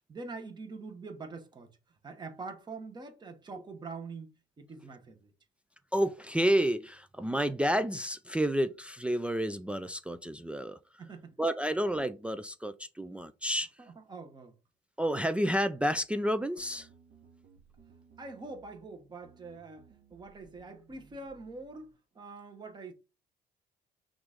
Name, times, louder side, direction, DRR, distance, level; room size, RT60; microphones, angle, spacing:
voice 1, 0.1-1.8 2.0-5.3 11.0-11.3 13.8-14.6 18.2-22.9, right 3 dB, 25° right, 1.1 m, -44 dB
voice 2, 5.9-10.8 11.4-13.7 15.0-16.9, equal, 5° right, 0.3 m, -30 dB
sound 1, 16.6-21.9, right 6 dB, 50° right, 1.3 m, -60 dB
5.9 x 2.6 x 3.5 m
cardioid pair, 110°, 17 cm